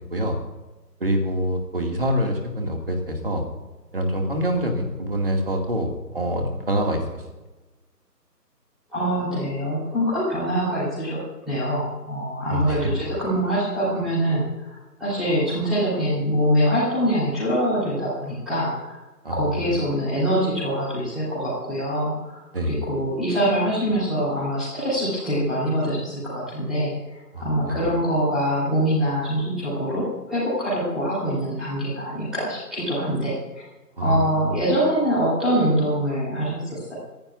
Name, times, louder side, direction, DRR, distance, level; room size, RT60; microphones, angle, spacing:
voice 1, 1.0-3.4 3.9-7.2 12.5-12.8 19.2-19.7 22.5-22.8 27.3-27.5 34.0-34.6, equal, 35° right, 2 dB, 2.3 m, -25 dB
voice 2, 8.9-11.2 11.5-19.0 19.3-22.4 22.6-26.9 27.4-33.3 34.0-36.9, equal, ahead, -15 dB, 3.7 m, -24 dB
28.5 x 15.0 x 2.6 m, 1.1 s
figure-of-eight pair, 175°, 49 cm